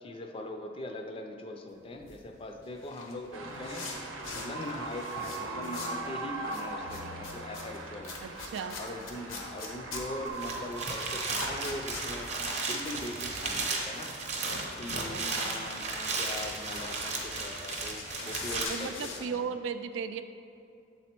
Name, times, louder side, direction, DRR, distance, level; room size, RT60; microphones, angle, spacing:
voice 1, 0.0-3.9 4.3-8.2 8.8-12.3 12.7-14.1 14.8-19.4, left 1 dB, 25° left, 4 dB, 0.4 m, -41 dB
sound 1, 1.8-6.1 6.4-19.2, left 3 dB, 90° left, 1.0 m, -43 dB
sound 2, 3.3-15.2, right 3 dB, 90° right, 0.8 m, -41 dB
voice 2, 8.2-8.8 15.1-15.6 18.7-20.2, right 6 dB, 70° right, 9 dB, 0.3 m, -36 dB
sound 3, 10.3-18.7, right 3 dB, 35° right, 0.7 m, -35 dB
7.2 x 4.1 x 4.4 m, 2.6 s
head